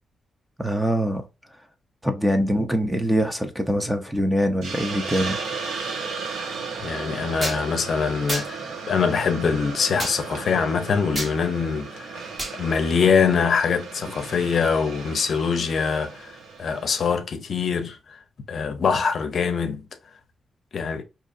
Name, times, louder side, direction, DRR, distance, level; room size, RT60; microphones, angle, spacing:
voice 1, 0.6-1.2 2.0-5.4, equal, 5° right, 0.6 m, -23 dB
Hiss, 4.6-17.2, right 4 dB, 80° right, 1.0 m, -35 dB
voice 2, 6.8-8.6 8.9-12.2 12.5-18.2 18.5-19.8 20.7-21.0, left 5 dB, 55° left, 0.6 m, -23 dB
sound 1, 7.4-7.6 8.3-8.5 10.0-10.2 11.1-11.3 12.4-12.6, right 1 dB, 30° right, 1.1 m, -28 dB
5.0 x 2.8 x 2.5 m
wide cardioid pair, 150°, 0 cm